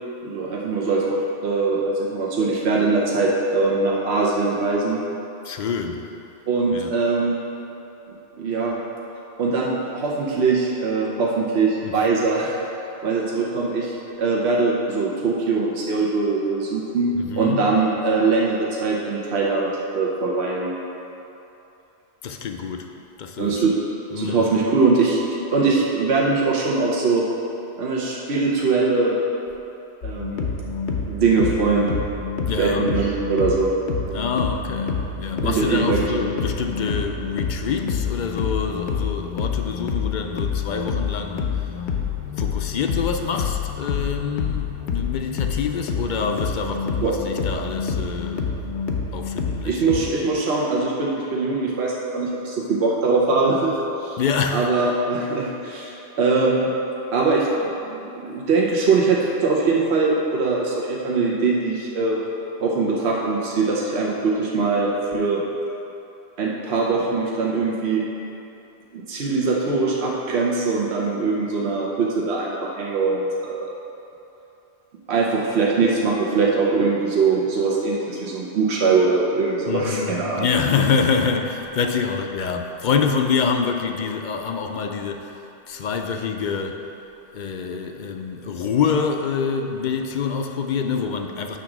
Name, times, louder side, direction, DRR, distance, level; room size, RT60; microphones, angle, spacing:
voice 1, 0.2-5.0 6.5-7.4 8.4-8.8 9.4-12.6 13.0-20.7 23.4-23.7 24.1-25.2 25.5-27.2 27.8-29.2 30.0-30.5 31.1-31.9 32.6-33.7 35.4-36.1 47.0-47.1 49.6-54.2 54.5-56.7 57.1-57.5 57.8-62.2 62.6-65.4 66.4-68.0 68.9-73.7 75.1-80.5, right 4 dB, 75° right, -3 dB, 1.1 m, -22 dB
voice 2, 5.4-6.1 6.7-6.9 11.8-11.9 17.1-17.7 22.2-22.9 23.2-23.6 24.1-24.6 32.5-32.9 34.1-41.8 42.4-48.5 49.1-49.8 54.2-54.7 79.7-86.8 87.3-91.6, left 5 dB, 60° left, 4 dB, 0.5 m, -26 dB
sound 1, 30.0-50.0, left 6 dB, 80° left, 1.0 m, -27 dB
8.2 x 3.8 x 6.0 m, 2.9 s
omnidirectional pair, 1.1 m